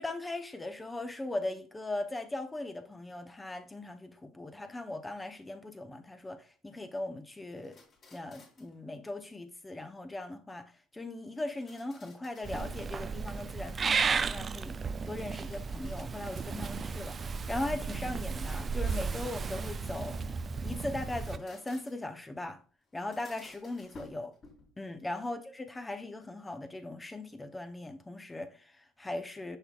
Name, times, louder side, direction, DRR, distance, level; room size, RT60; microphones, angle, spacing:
voice 1, 0.0-7.8 8.1-14.8 15.1-20.2 20.6-22.6 22.9-24.3 24.8-29.6, left 2 dB, 15° left, 0.8 m, -39 dB
sound 1, 7.6-8.8 11.2-12.8 13.2-13.8 15.3-16.9 18.5-20.5 21.0-22.2 22.9-24.8, left 3 dB, 40° left, 2.7 m, -56 dB
Purr / Meow, 12.4-21.4, right 5 dB, 35° right, 0.4 m, -34 dB
6.6 x 6.1 x 2.4 m
hypercardioid pair, 65°, 0 cm